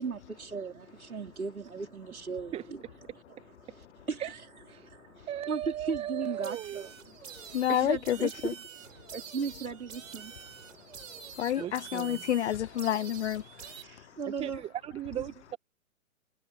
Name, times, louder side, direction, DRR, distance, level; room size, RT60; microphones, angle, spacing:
voice 1, 0.0-2.8 3.3-4.4 4.8-8.6 8.9-10.3 11.5-11.7 13.6-14.6 15.1-15.3, right 5 dB, 85° right, 4.9 m, -37 dB
voice 2, 5.3-6.9 11.6-12.2 14.2-15.6, right 12 dB, 15° right, 1.5 m, -37 dB
sound 1, 6.4-13.8, right 7 dB, 65° right, 6.5 m, -47 dB
voice 3, 7.5-8.5 11.4-13.4, left 11 dB, 55° left, 0.6 m, -29 dB
hypercardioid pair, 135°, 42 cm